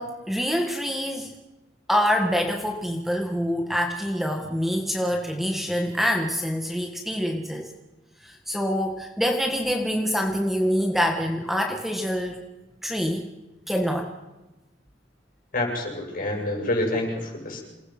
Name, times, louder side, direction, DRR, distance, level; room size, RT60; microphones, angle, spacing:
voice 1, 0.0-1.3 1.9-7.7 8.2-12.4 12.8-13.3 13.7-14.1, equal, ahead, 2 dB, 1.7 m, -25 dB
voice 2, 15.5-17.6, left 1 dB, 45° left, 0 dB, 7.8 m, -27 dB
28.0 x 19.5 x 6.1 m, 1.1 s
head